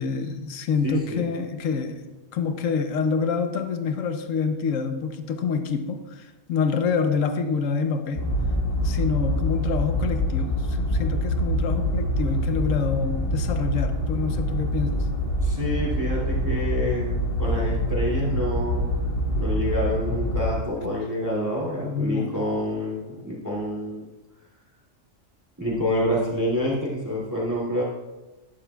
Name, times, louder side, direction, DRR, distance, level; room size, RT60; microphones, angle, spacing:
voice 1, 0.0-2.0 2.3-8.3 8.8-15.1 21.8-22.3, left 5 dB, 75° left, 8 dB, 1.2 m, -27 dB
voice 2, 0.8-1.3 15.4-19.0 19.3-24.1 25.6-27.8, equal, 15° right, -5 dB, 2.4 m, -27 dB
sound 1, 8.2-20.5, equal, 50° left, 1.5 m, -25 dB
11.5 x 11.5 x 2.3 m, 1.1 s
omnidirectional pair, 1.4 m